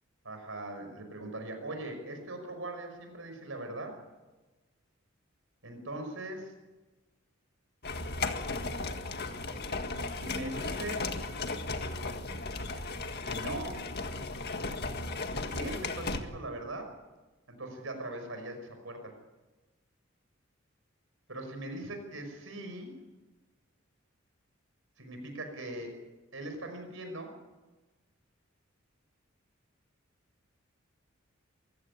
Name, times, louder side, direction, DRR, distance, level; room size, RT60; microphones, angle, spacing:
voice 1, 0.2-4.0 5.6-6.5 10.1-11.1 13.2-13.9 15.4-17.0 17.5-19.2 21.3-22.9 25.0-26.0 26.3-27.3, right 1 dB, 70° right, 5 dB, 5.6 m, -40 dB
sound 1, 7.8-16.2, left 3 dB, 55° left, 1.8 m, -35 dB
24.0 x 15.5 x 9.8 m, 1.2 s
head